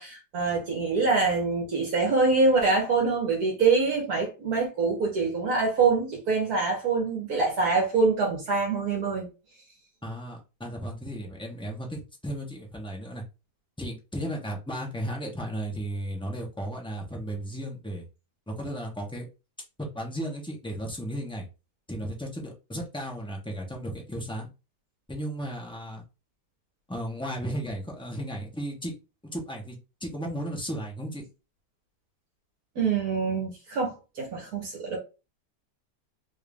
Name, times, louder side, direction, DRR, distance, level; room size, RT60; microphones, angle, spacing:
voice 1, 0.0-9.3 32.7-35.0, right 4 dB, 65° right, 1.5 m, -25 dB
voice 2, 10.0-13.2 13.8-18.0 18.5-19.2 19.8-21.5 21.9-24.5 25.1-26.0 26.9-28.9 29.3-29.8 30.0-31.2, equal, 5° left, 0.4 m, -34 dB
3.6 x 2.5 x 3.4 m
omnidirectional pair, 1.8 m